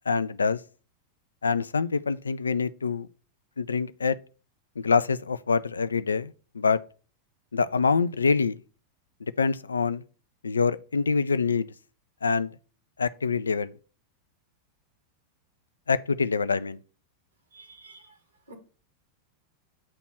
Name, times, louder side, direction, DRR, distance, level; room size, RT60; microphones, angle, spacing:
voice 1, 0.1-0.6 1.4-3.1 3.6-4.2 4.8-6.8 7.5-8.6 9.4-10.0 10.4-11.7 12.2-12.5 13.0-13.7 15.9-16.8, left 5 dB, 75° left, 0.3 m, -25 dB
voice 2, 17.5-18.0 18.5-18.6, right 2 dB, 75° right, 2.1 m, -48 dB
8.7 x 3.0 x 6.0 m
figure-of-eight pair, 90°, 0 cm